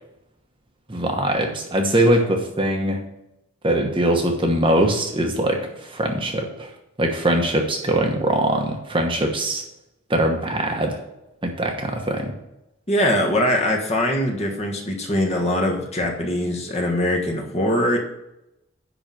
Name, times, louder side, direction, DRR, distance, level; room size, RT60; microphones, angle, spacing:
voice 1, 0.9-3.0 3.6-6.7 7.0-9.6 10.1-11.0 11.4-12.3, right 1 dB, 25° right, 2 dB, 1.1 m, -22 dB
voice 2, 12.9-18.0, left 1 dB, 30° left, 1 dB, 1.5 m, -22 dB
10.0 x 4.0 x 7.5 m, 0.87 s
head